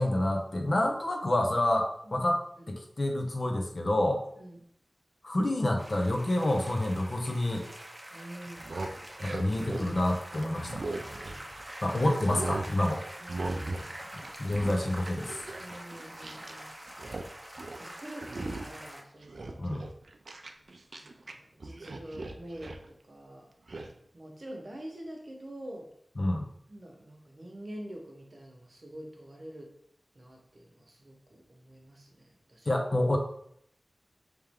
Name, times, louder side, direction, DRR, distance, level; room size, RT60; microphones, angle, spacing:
voice 1, 0.0-2.4 2.7-4.2 5.2-7.6 9.2-10.8 11.8-13.0 14.4-15.3 19.6-19.9 26.2-26.5 32.7-33.2, left 1 dB, 55° left, 2 dB, 0.7 m, -28 dB
sound 1, 5.8-19.0, right 1 dB, 15° right, 0.7 m, -45 dB
voice 2, 8.1-8.7 11.1-11.5 11.9-12.0 13.2-14.0 15.6-16.8 17.8-19.6 21.0-23.5 24.1-25.9 26.7-29.7 30.1-32.7, right 1 dB, 55° right, 1 dB, 0.9 m, -46 dB
sound 2, 8.5-11.7 12.0-12.7 13.3-13.9 14.2-16.6 16.9-17.3 17.6-17.8 18.2-18.8 19.2-21.3 21.6-22.9 23.7-23.9, right 2 dB, 75° right, 0.4 m, -38 dB
3.4 x 3.1 x 3.5 m, 0.68 s
wide cardioid pair, 50°, 0 cm